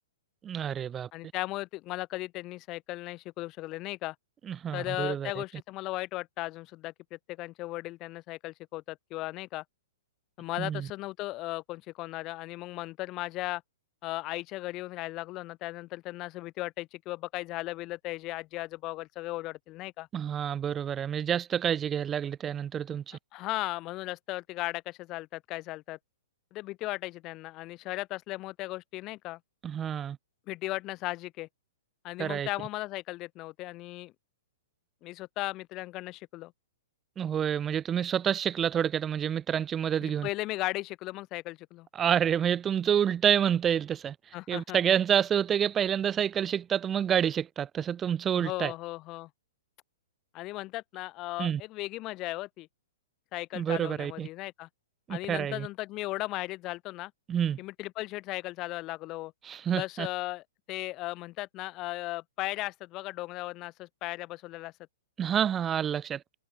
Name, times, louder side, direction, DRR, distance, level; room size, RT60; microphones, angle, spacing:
voice 1, 0.4-1.1 4.5-5.3 10.6-10.9 20.1-23.2 29.6-30.2 32.2-32.5 37.2-40.3 42.0-44.1 44.5-48.7 51.4-51.6 53.5-54.3 55.1-55.7 57.3-57.6 59.5-60.1 65.2-66.2, right 9 dB, 20° right, 0.8 m, -28 dB
voice 2, 1.1-4.1 4.7-9.6 10.4-13.6 14.0-20.1 23.3-26.0 26.5-29.4 30.5-31.5 32.0-34.1 35.0-36.5 40.0-41.9 44.3-44.8 48.3-49.3 50.3-52.7 53.3-54.7 55.1-57.1 57.6-59.3 59.7-64.7, left 19 dB, 35° left, 7.8 m, -36 dB
hypercardioid pair, 115°, 0 cm